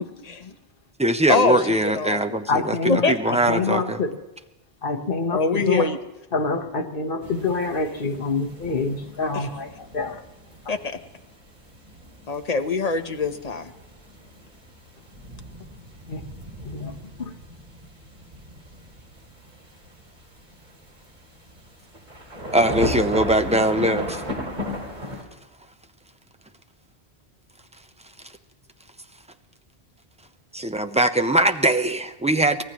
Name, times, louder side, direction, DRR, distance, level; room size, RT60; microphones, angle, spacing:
voice 1, 0.2-0.5 1.3-2.4 2.9-3.1 5.3-6.0 9.3-9.4 10.7-10.8 12.3-13.7, left 3 dB, 40° left, 7 dB, 1.1 m, -24 dB
voice 2, 1.0-2.8 3.1-4.0 22.5-24.2 30.5-32.6, right 1 dB, 5° right, 8 dB, 0.7 m, -21 dB
voice 3, 2.5-4.1 4.8-5.9 6.3-10.2 10.6-10.8 16.1-16.2 16.6-17.4, left 4 dB, 60° left, 4 dB, 1.4 m, -26 dB
sound 1, 7.2-25.2, equal, 45° right, 2.8 m, -36 dB
24.5 x 18.0 x 3.1 m, 1.0 s
omnidirectional pair, 1.1 m